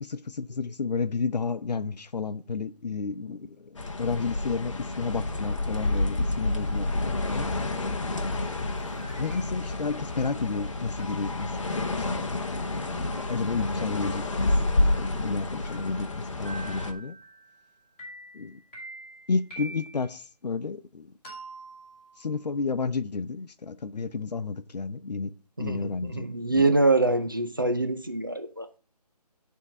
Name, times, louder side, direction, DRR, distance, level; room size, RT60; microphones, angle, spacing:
voice 1, 0.0-3.6 4.0-6.9 7.2-7.5 9.1-11.5 11.8-14.5 14.8-17.1 18.3-18.6 19.3-21.1 22.2-25.3 25.6-26.2 26.5-26.7, left 4 dB, 80° left, 0.7 m, -31 dB
sound 1, 3.8-16.9, left 2 dB, 50° left, 0.9 m, -29 dB
sound 2, 8.5-9.8 11.0-17.7 18.0-20.2 21.2-22.5, right 2 dB, 15° left, 3.6 m, -47 dB
voice 2, 25.6-28.7, right 2 dB, 30° right, 0.4 m, -25 dB
10.0 x 3.7 x 5.5 m
hypercardioid pair, 180°, 21 cm